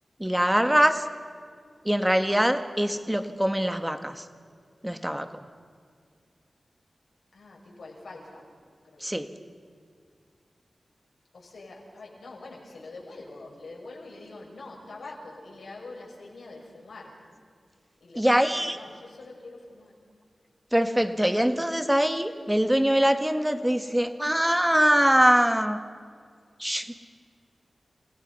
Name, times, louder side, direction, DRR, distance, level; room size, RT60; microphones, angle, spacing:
voice 1, 0.2-1.1 1.9-4.3 4.8-5.3 9.0-9.3 18.2-18.8 20.7-25.8 26.6-26.9, equal, 10° right, 8 dB, 1.8 m, -23 dB
voice 2, 7.3-8.5 8.8-9.2 11.3-17.2 18.0-19.9, left 2 dB, 90° left, -2 dB, 6.4 m, -45 dB
29.5 x 17.5 x 5.7 m, 2.1 s
cardioid pair, 50°, 0 cm